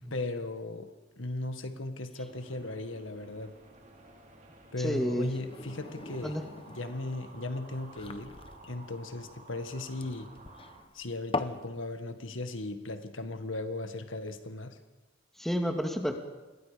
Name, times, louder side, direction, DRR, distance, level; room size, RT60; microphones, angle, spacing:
voice 1, 0.1-3.6 4.7-6.4 6.7-8.4 8.7-10.3 10.9-14.8, left 2 dB, 75° left, 7 dB, 1.8 m, -37 dB
sound 1, 2.2-10.8, right 2 dB, 40° right, 3.8 m, -53 dB
voice 2, 4.8-5.3 6.2-6.4 15.4-16.1, equal, ahead, 3 dB, 2.2 m, -30 dB
sound 2, 5.2-11.6, left 3 dB, 30° left, 1.0 m, -41 dB
29.0 x 22.0 x 5.2 m, 1.2 s
head